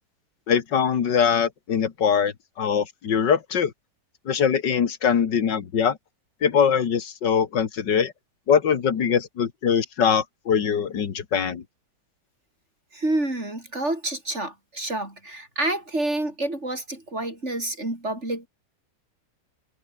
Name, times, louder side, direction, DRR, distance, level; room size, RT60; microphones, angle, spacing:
voice 1, 0.5-3.7 4.3-6.0 6.4-8.1 8.5-11.6, left 7 dB, 80° left, 2.3 m, -22 dB
voice 2, 12.9-18.5, right 2 dB, 40° right, 6.2 m, -28 dB
omnidirectional pair, 1.9 m